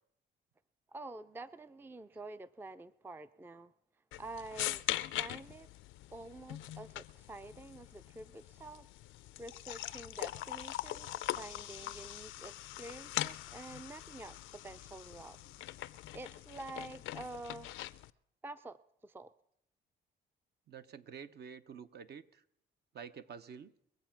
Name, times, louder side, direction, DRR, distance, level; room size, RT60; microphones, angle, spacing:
voice 1, 0.9-3.7 4.2-4.8 5.2-5.7 6.1-8.9 9.4-14.4 14.6-15.7 16.1-17.7 18.4-19.3, right 2 dB, 10° right, 14 dB, 0.4 m, -48 dB
sound 1, 4.1-18.1, left 14 dB, 80° left, 0.5 m, -42 dB
voice 2, 20.7-22.4 22.9-23.7, right 6 dB, 55° right, 11 dB, 0.8 m, -49 dB
22.5 x 7.9 x 5.9 m, 0.75 s
cardioid pair, 90°, 20 cm